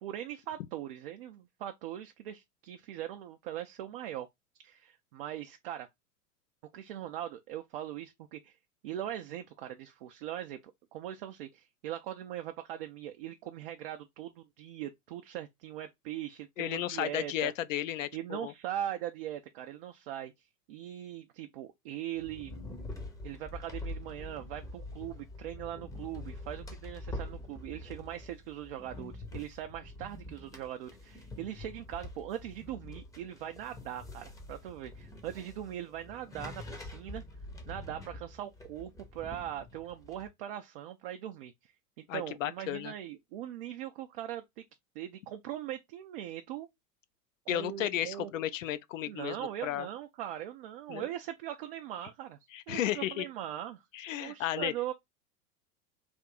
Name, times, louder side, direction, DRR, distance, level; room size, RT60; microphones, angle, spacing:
voice 1, 0.0-4.3 4.6-5.9 6.7-8.6 8.8-17.5 18.1-22.5 23.2-37.2 37.7-44.6 45.0-46.7 47.5-48.3 49.1-52.4 52.7-53.8 54.2-54.9, right 12 dB, 40° right, 0.4 m, -40 dB
voice 2, 16.6-18.5 42.1-42.9 47.5-49.9 50.9-51.1 52.5-53.3 53.9-54.9, left 12 dB, 55° left, 0.5 m, -34 dB
sound 1, 22.2-40.3, left 2 dB, 5° left, 0.7 m, -45 dB
3.4 x 2.6 x 3.7 m
figure-of-eight pair, 90°, 46 cm